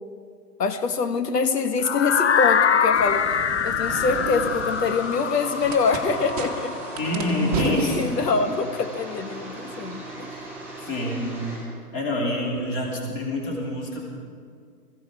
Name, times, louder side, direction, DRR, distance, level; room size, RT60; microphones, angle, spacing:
voice 1, 0.6-6.8 8.0-10.3, left 4 dB, 90° left, 8 dB, 1.4 m, -25 dB
sound 1, 1.8-7.8, left 7 dB, 45° left, 0.6 m, -24 dB
sound 2, 2.9-8.0, right 4 dB, 25° right, 1.2 m, -33 dB
sound 3, 3.8-11.6, right 1 dB, 5° right, 3.8 m, -38 dB
voice 2, 7.0-8.0 10.8-14.0, left 1 dB, 20° left, -2 dB, 2.8 m, -27 dB
20.0 x 15.5 x 4.7 m, 2.1 s
hypercardioid pair, 170°, 47 cm